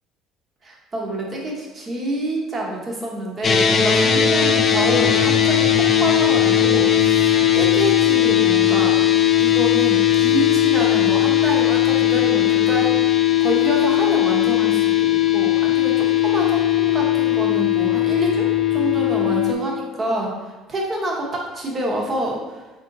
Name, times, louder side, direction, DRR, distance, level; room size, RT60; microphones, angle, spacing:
voice 1, 0.6-8.9 9.4-22.7, right 1 dB, 35° right, -2 dB, 1.0 m, -27 dB
sound 1, 3.4-19.5, left 11 dB, 40° left, 0.4 m, -18 dB
3.5 x 2.6 x 3.9 m, 1.2 s
supercardioid pair, 85°, 0 cm